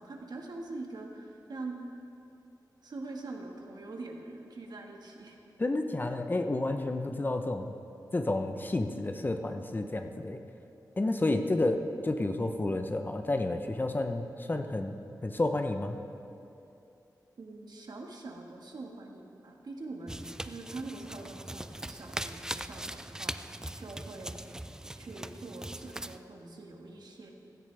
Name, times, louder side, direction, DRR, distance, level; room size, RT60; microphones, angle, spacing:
voice 1, 0.0-1.8 2.8-5.4 17.4-24.5 25.0-27.3, right 2 dB, 70° right, 1 dB, 1.5 m, -44 dB
voice 2, 5.6-7.7 8.1-10.4 11.0-16.0, left 2 dB, 25° left, 6 dB, 0.6 m, -30 dB
sound 1, 20.1-26.2, right 1 dB, 10° right, 0.3 m, -40 dB
16.0 x 14.0 x 3.3 m, 2.7 s
wide cardioid pair, 130°, 7 cm